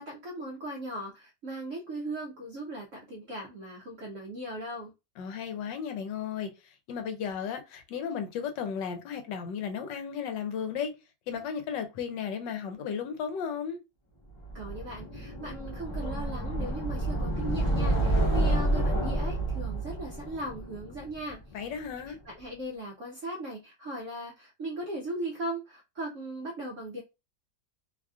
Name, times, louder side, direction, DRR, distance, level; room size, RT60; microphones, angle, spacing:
voice 1, 0.0-4.9 14.5-21.4 22.0-27.0, right 1 dB, 70° right, 0.7 m, -38 dB
voice 2, 5.2-10.9 11.3-13.8 21.5-22.2, left 7 dB, 75° left, 1.2 m, -34 dB
sound 1, 14.4-21.5, right 1 dB, 25° left, 0.6 m, -29 dB
3.2 x 2.4 x 2.4 m
omnidirectional pair, 2.1 m